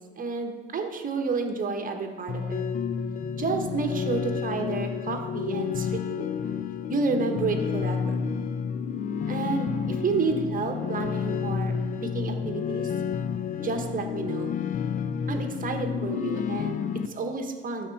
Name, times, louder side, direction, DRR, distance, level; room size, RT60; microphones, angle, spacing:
voice 1, 0.0-2.6 3.3-6.3 6.9-8.2 9.3-11.7 12.0-12.9 13.6-14.5 15.3-17.9, right 4 dB, 25° right, 5 dB, 1.2 m, -30 dB
sound 1, 2.3-17.1, left 7 dB, 25° left, 0.4 m, -30 dB
12.0 x 4.4 x 4.2 m, 1.4 s
hypercardioid pair, 90°, 31 cm